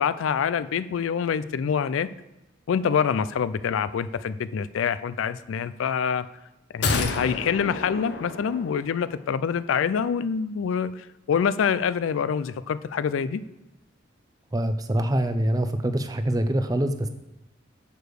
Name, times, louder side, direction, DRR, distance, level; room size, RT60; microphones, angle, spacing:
voice 1, 0.0-2.1 2.7-6.3 6.7-13.4, left 7 dB, 90° left, 15 dB, 0.4 m, -26 dB
sound 1, 6.8-9.2 9.5-9.6, left 3 dB, 60° left, 0.7 m, -30 dB
voice 2, 14.5-17.1, right 1 dB, 20° right, 8 dB, 0.5 m, -24 dB
6.8 x 4.8 x 6.3 m, 0.93 s
head